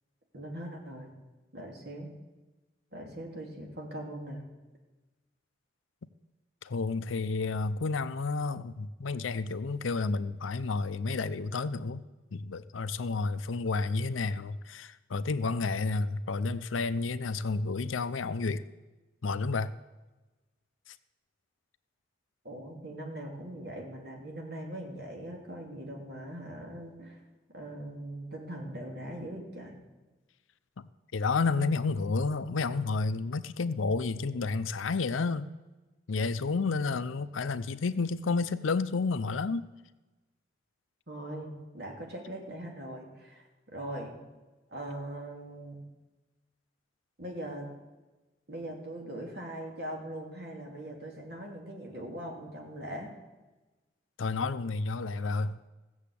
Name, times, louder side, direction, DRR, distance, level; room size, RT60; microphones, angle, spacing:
voice 1, 0.3-1.1 1.5-2.1 2.9-4.5 22.4-27.2 27.5-29.8 41.1-44.1 44.7-45.8 47.2-47.7 48.5-53.1, right 1 dB, 55° right, 0 dB, 2.7 m, -41 dB
voice 2, 6.6-12.0 12.3-18.6 19.2-19.7 30.8-35.5 36.1-39.6 54.2-55.6, left 4 dB, 90° left, 13 dB, 0.6 m, -31 dB
15.0 x 7.1 x 8.5 m, 1.2 s
head